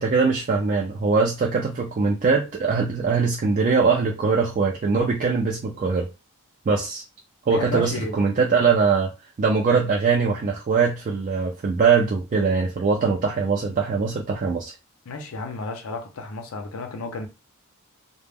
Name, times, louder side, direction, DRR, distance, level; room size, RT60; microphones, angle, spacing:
voice 1, 0.0-6.1 6.7-7.0 7.5-9.1 9.4-14.7, right 5 dB, 40° right, 0.3 m, -22 dB
voice 2, 7.5-8.2 15.1-17.3, left 3 dB, 70° left, 0.5 m, -32 dB
2.1 x 2.0 x 3.3 m
head